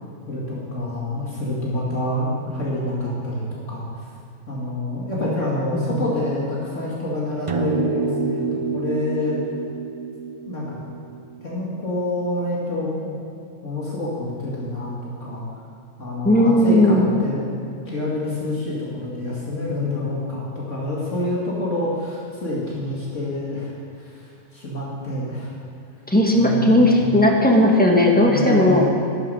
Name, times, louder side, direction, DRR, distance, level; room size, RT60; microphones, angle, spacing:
voice 1, 0.3-3.9 4.5-8.4 8.7-9.4 10.5-10.8 11.4-13.2 13.6-14.9 15.2-15.5 16.0-17.5 17.9-25.5 26.3-27.0 28.3-28.8, left 1 dB, 60° left, -6 dB, 2.6 m, -27 dB
voice 2, 5.2-6.0 16.2-17.0 26.1-28.8, left 1 dB, 5° left, -1 dB, 1.5 m, -17 dB
sound 1, 7.5-12.0, right 5 dB, 45° right, 0.4 m, -28 dB
12.0 x 9.9 x 6.3 m, 2.5 s
omnidirectional pair, 1.4 m